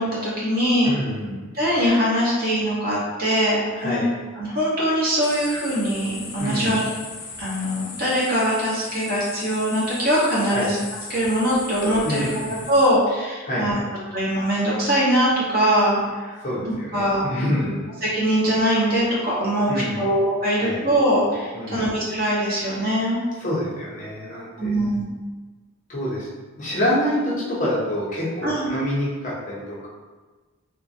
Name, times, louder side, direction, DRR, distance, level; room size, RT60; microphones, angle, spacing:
voice 1, 0.0-0.9 1.5-4.0 4.4-6.8 7.4-10.8 11.1-12.3 12.7-13.8 14.1-16.3 16.7-17.2 18.0-23.2 24.6-25.1 28.4-28.7, equal, 45° right, -7 dB, 0.9 m, -22 dB
voice 2, 0.8-1.5 3.7-4.1 6.4-6.8 10.4-10.7 12.0-12.7 13.4-13.8 16.4-17.8 19.7-20.2 20.5-20.8 21.5-21.9 23.4-24.7 25.9-26.3 26.6-29.9, equal, 35° left, -6 dB, 0.6 m, -27 dB
sound 1, 5.2-12.9, left 3 dB, 75° left, 0.6 m, -37 dB
3.1 x 2.1 x 2.6 m, 1.3 s
head